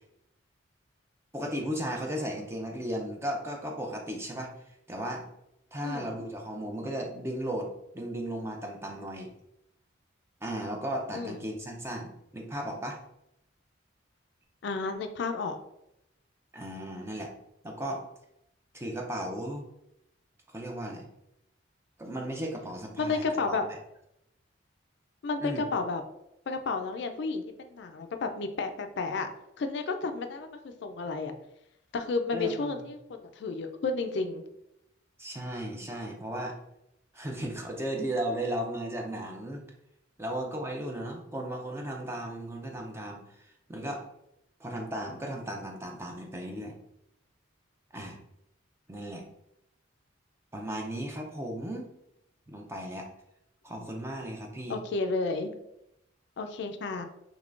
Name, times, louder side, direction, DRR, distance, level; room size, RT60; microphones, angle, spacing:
voice 1, 1.3-4.5 4.9-5.3 5.7-9.3 10.4-13.0 16.5-17.3 17.6-18.0 18.7-19.6 20.5-21.1 22.0-23.8 25.4-25.6 32.3-32.7 35.2-36.6 37.1-39.6 40.2-44.0 44.6-46.8 47.9-48.2 48.9-49.3 50.5-51.9 52.5-53.1 53.6-54.8, right 1 dB, 15° right, 1 dB, 0.4 m, -35 dB
voice 2, 14.6-15.6 23.0-23.6 25.2-26.0 26.5-29.3 29.6-31.3 31.9-34.4 53.8-53.9 54.7-55.5 56.4-57.0, left 4 dB, 60° left, 7 dB, 0.3 m, -32 dB
3.6 x 3.1 x 2.4 m, 0.82 s
head